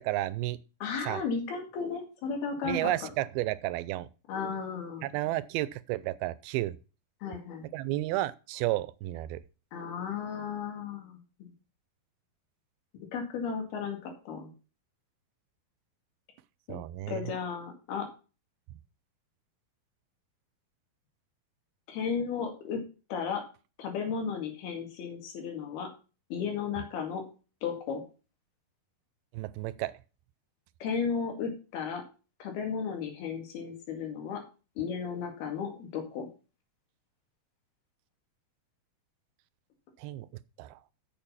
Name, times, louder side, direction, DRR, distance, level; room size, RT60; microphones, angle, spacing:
voice 1, 0.1-0.6 1.0-1.2 2.6-4.1 5.0-6.8 7.7-9.4 16.7-17.2 29.3-29.9 40.0-40.3 40.6-40.8, right 16 dB, 85° right, 2.5 m, -32 dB
voice 2, 0.8-3.1 4.3-5.1 7.2-7.7 9.7-11.5 13.1-14.5 16.7-16.8 17.1-18.1 21.9-22.8 23.1-23.4 23.8-25.9 26.3-27.2 27.6-28.0 30.8-32.0 32.4-34.4 34.8-36.3, left 6 dB, 85° left, 4.2 m, -34 dB
8.1 x 7.0 x 5.6 m
omnidirectional pair, 4.3 m